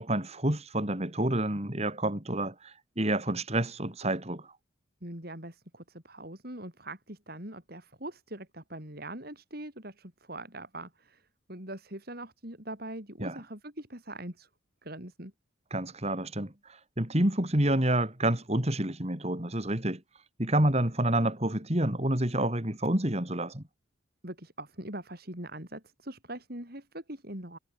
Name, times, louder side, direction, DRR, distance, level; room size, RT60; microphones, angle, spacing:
voice 1, 0.0-4.5 13.2-13.4 15.7-20.0 20.4-23.6, right 1 dB, 30° right, 3.5 m, -28 dB
voice 2, 5.0-14.5 14.8-15.3 24.2-27.6, right 1 dB, 50° right, 7.1 m, -42 dB
head